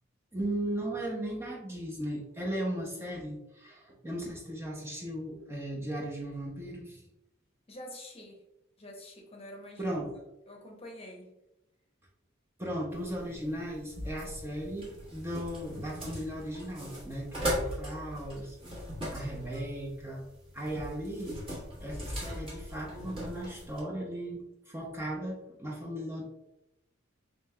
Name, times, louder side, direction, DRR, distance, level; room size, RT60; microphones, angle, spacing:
voice 1, 0.3-7.0 9.8-10.1 12.6-18.6 19.1-20.2 20.5-21.4 21.8-26.2, right 1 dB, 10° right, -2 dB, 0.6 m, -37 dB
voice 2, 7.7-8.4 8.8-10.0 10.5-11.4, left 1 dB, 30° left, 1 dB, 0.8 m, -47 dB
sound 1, 12.9-23.8, equal, 30° right, 1.4 m, -39 dB
5.2 x 3.1 x 2.2 m, 0.89 s
head